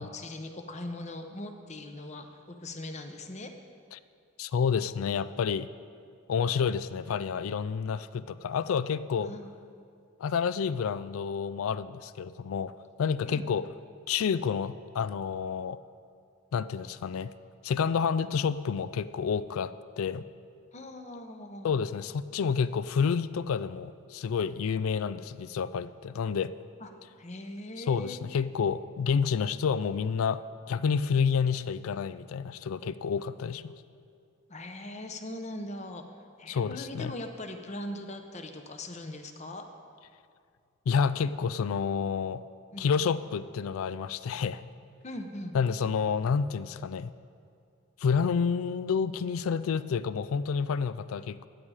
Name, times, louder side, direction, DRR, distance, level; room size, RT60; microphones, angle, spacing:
voice 1, 0.0-3.5 9.2-9.5 13.3-13.4 20.7-21.8 26.8-26.9 27.2-28.2 34.5-36.0 36.4-39.7 42.7-42.9 45.0-45.5, left 1 dB, 30° left, 6 dB, 0.8 m, -40 dB
voice 2, 4.4-5.7 6.3-9.3 10.2-12.7 13.0-13.7 14.1-15.8 16.5-17.3 17.6-20.2 21.6-26.5 27.8-30.4 30.7-33.7 36.5-37.1 40.9-42.4 42.8-44.6 45.5-47.1 48.0-51.5, left 6 dB, 80° left, 15 dB, 0.4 m, -29 dB
14.0 x 8.9 x 4.9 m, 2.3 s
head